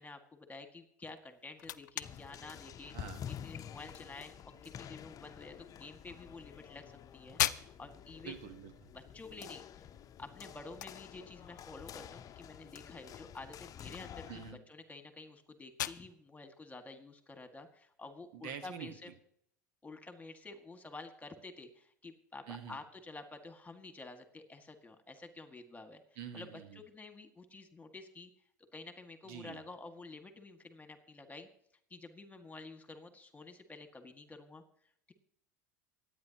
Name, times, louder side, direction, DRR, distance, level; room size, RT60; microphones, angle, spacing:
voice 1, 0.0-3.0 3.4-8.3 8.9-9.9 10.2-19.1 19.8-26.0 26.3-28.3 28.7-31.5 31.9-34.6, left 3 dB, 15° left, 6 dB, 2.0 m, -50 dB
sound 1, 1.0-18.7, left 12 dB, 85° left, 0.5 m, -44 dB
sound 2, 2.0-14.5, left 9 dB, 40° left, 0.7 m, -49 dB
voice 2, 2.9-3.2 8.2-8.9 14.3-14.6 18.3-18.9 22.5-22.8 26.2-26.8 29.2-29.6, right 7 dB, 65° right, 9 dB, 1.5 m, -46 dB
27.0 x 9.3 x 3.0 m, 0.69 s
hypercardioid pair, 85°, 10 cm